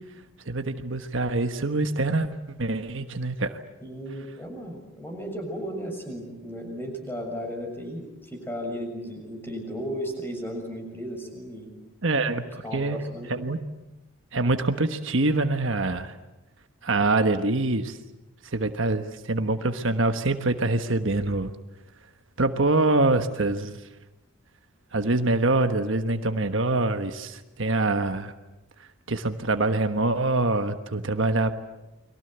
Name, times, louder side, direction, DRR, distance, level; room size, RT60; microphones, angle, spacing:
voice 1, 0.5-3.6 12.0-13.0 13.3-13.6 14.3-16.1 16.8-18.0 18.4-21.5 22.4-23.8 24.9-28.3 29.1-31.5, right 2 dB, 65° right, 8 dB, 1.3 m, -25 dB
voice 2, 3.8-11.7 12.6-13.3, equal, 10° left, 3 dB, 6.7 m, -35 dB
30.0 x 22.5 x 8.1 m, 0.99 s
head